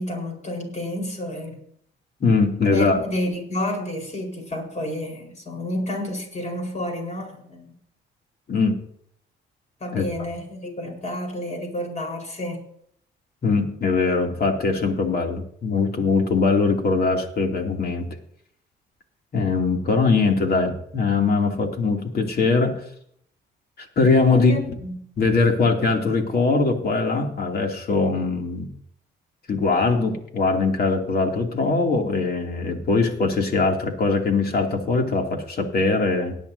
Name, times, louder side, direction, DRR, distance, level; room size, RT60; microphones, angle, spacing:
voice 1, 0.0-1.6 2.7-7.7 9.8-12.6 24.3-25.0, left 1 dB, 35° left, 2 dB, 4.6 m, -30 dB
voice 2, 2.2-3.0 8.5-8.8 9.9-10.0 13.4-18.1 19.3-22.8 23.8-24.5 25.2-28.7 29.5-36.3, left 4 dB, 50° left, 2 dB, 2.8 m, -21 dB
18.5 x 10.5 x 2.8 m, 0.66 s
cardioid pair, 90°, 20 cm